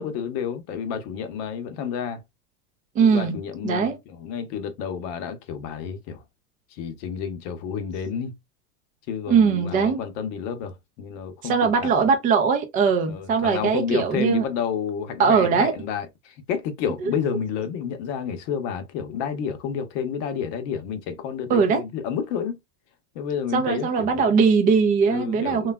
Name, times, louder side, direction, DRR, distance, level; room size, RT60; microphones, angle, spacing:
voice 1, 0.0-2.2 3.0-6.2 6.7-8.4 9.1-11.9 13.1-22.6 23.1-24.4 25.0-25.7, left 7 dB, 50° left, 0.8 m, -30 dB
voice 2, 2.9-3.4 3.6-4.0 9.3-10.0 11.4-14.4 15.2-15.7 17.0-17.1 21.5-21.8 23.5-25.7, right 5 dB, 20° right, 0.4 m, -20 dB
3.1 x 2.3 x 2.2 m
supercardioid pair, 120°, 48 cm